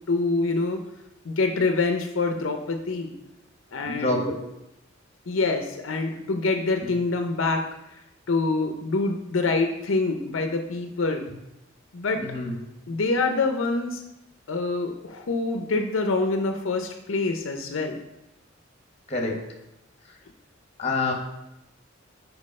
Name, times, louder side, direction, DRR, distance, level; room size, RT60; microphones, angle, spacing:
voice 1, 0.1-0.8 1.2-3.1 3.7-4.3 5.3-7.6 7.9-8.0 8.3-11.3 11.9-12.2 12.9-14.0 14.5-18.0, left 3 dB, 75° left, 5 dB, 0.6 m, -26 dB
voice 2, 3.9-4.2 12.2-12.5 19.1-19.3 20.8-21.1, left 3 dB, 30° left, 1 dB, 1.1 m, -26 dB
5.2 x 4.7 x 5.3 m, 0.90 s
head